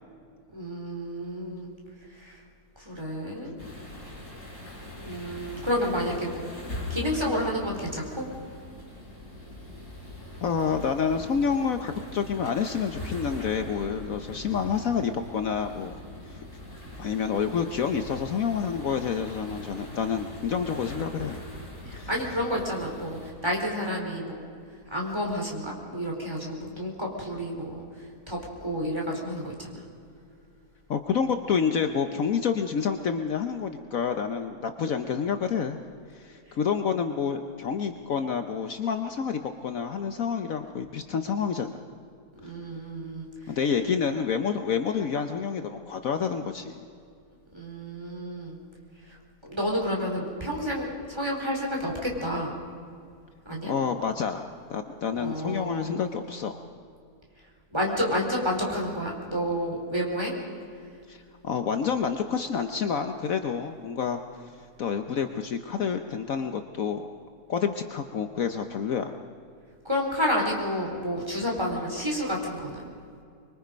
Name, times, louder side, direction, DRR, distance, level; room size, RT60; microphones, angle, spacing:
voice 1, 0.5-1.7 2.2-2.4 2.8-3.5 5.0-6.5 6.9-8.3 21.9-23.2 23.4-24.4 24.9-27.8 28.3-29.7 42.4-43.3 47.5-48.6 49.4-52.5 53.5-53.7 55.1-56.0 57.7-60.3 69.8-72.8, equal, 15° right, -1 dB, 4.1 m, -30 dB
sound 1, 3.6-23.3, left 1 dB, 45° left, 5.6 m, -41 dB
voice 2, 10.4-16.4 17.0-21.4 22.0-22.1 30.9-35.8 36.1-41.8 43.5-46.8 53.6-56.6 61.1-64.5 64.8-67.0 67.5-69.2, left 6 dB, 60° left, 7 dB, 1.2 m, -28 dB
25.5 x 23.0 x 5.2 m, 2.3 s
omnidirectional pair, 1.7 m